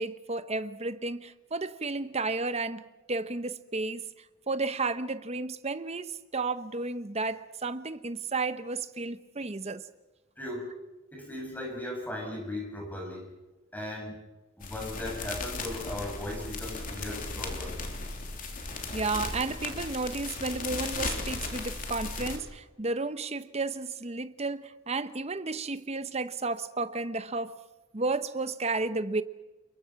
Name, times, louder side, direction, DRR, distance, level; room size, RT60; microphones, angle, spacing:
voice 1, 0.0-2.8 3.1-4.1 4.5-9.8 18.9-27.5 27.9-29.2, right 3 dB, 30° right, 0.9 m, -32 dB
voice 2, 10.4-10.7 11.1-13.3 13.7-14.2 14.6-17.8, left 1 dB, 10° left, 7.1 m, -37 dB
sound 1, 14.6-22.4, left 3 dB, 40° left, 3.3 m, -36 dB
29.5 x 22.0 x 6.0 m
head